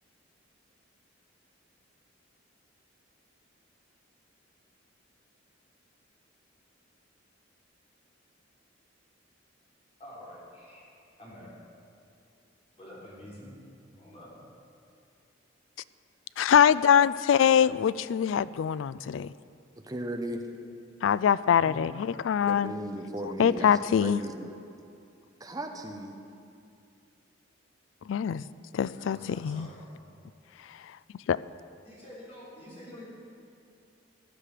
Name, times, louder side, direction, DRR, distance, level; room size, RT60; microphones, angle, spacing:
voice 1, 10.0-10.8 11.2-11.5 12.8-13.5 13.9-14.3 18.0-18.3 21.6-22.3 28.9-29.8 31.8-33.0, left 1 dB, 35° left, -6 dB, 3.8 m, -48 dB
voice 2, 16.4-19.3 21.0-22.7 23.4-24.2 28.1-28.4 28.7-29.7 31.3-31.4, left 8 dB, 70° left, 18 dB, 0.3 m, -23 dB
voice 3, 19.8-20.4 22.4-24.5 25.4-26.1, right 1 dB, 20° right, 3 dB, 1.0 m, -36 dB
14.5 x 10.5 x 5.0 m, 2.5 s
head